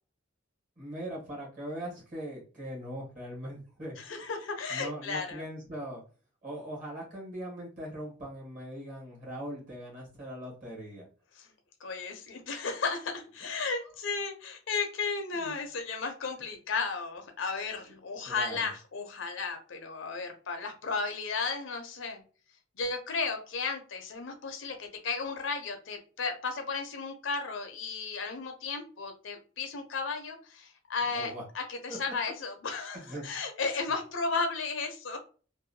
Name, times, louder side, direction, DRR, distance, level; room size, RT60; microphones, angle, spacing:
voice 1, 0.8-3.9 4.7-6.0 6.4-11.1 15.3-15.5 18.3-18.7 31.1-31.4 31.9-32.0 32.9-33.2, equal, 40° right, -3 dB, 1.3 m, -40 dB
voice 2, 4.0-5.4 11.3-11.5 11.8-22.2 22.8-35.2, left 4 dB, 70° left, 5 dB, 0.6 m, -34 dB
2.6 x 2.2 x 2.6 m, 0.38 s
head